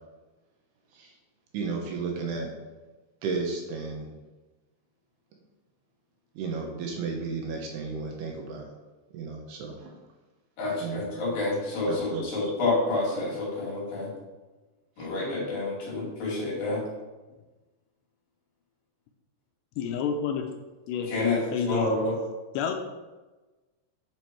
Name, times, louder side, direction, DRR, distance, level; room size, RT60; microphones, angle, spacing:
voice 1, 1.5-2.5 3.2-4.1 6.4-8.7 9.1-9.9 10.8-11.0 11.9-12.2 15.0-15.1, right 4 dB, 75° right, 1 dB, 2.8 m, -33 dB
voice 2, 10.6-14.1 15.0-16.8 21.1-21.4 21.7-22.1, left 2 dB, 55° left, -6 dB, 4.1 m, -28 dB
voice 3, 19.8-20.4 20.9-21.1 21.5-21.9 22.5-22.7, left 7 dB, 80° left, 5 dB, 2.8 m, -29 dB
9.3 x 5.3 x 4.5 m, 1.2 s
omnidirectional pair, 5.1 m